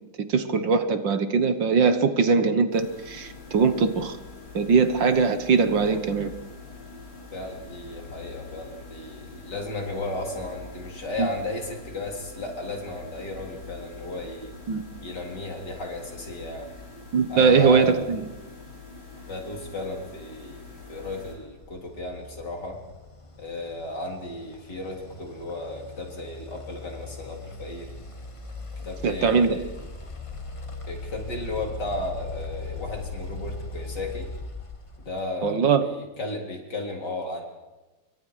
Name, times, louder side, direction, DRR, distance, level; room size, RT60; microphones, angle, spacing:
voice 1, 0.3-4.2 4.5-6.3 11.2-11.3 14.7-14.8 17.1-18.2 29.0-29.6 35.4-35.9, right 5 dB, 60° right, 10 dB, 1.9 m, -21 dB
sound 1, 2.7-21.3, left 3 dB, 75° left, 7.8 m, -44 dB
voice 2, 7.3-14.5 15.0-16.7 17.3-18.0 19.3-22.8 23.4-27.9 28.8-29.7 30.9-34.3 35.0-37.4, left 2 dB, 50° left, 1 dB, 4.3 m, -34 dB
sound 2, 21.2-35.4, left 3 dB, 20° left, 1.2 m, -39 dB
28.5 x 24.0 x 4.9 m, 1.1 s
omnidirectional pair, 2.3 m